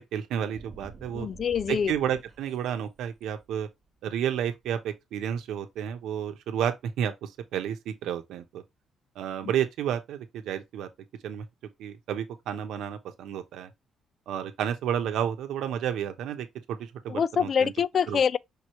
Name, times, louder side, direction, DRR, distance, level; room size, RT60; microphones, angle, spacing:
voice 1, 0.1-1.3 1.7-3.7 4.0-8.6 9.2-10.9 11.2-11.4 11.8-13.7 14.3-17.7 18.1-18.2, right 9 dB, 85° right, 0.9 m, -31 dB
sound 1, 0.5-2.6 3.0-3.4, right 4 dB, 35° right, 1.2 m, -47 dB
voice 2, 1.1-1.9 17.1-18.4, left 7 dB, 50° left, 0.3 m, -25 dB
5.3 x 3.1 x 3.0 m
cardioid pair, 90°, 0 cm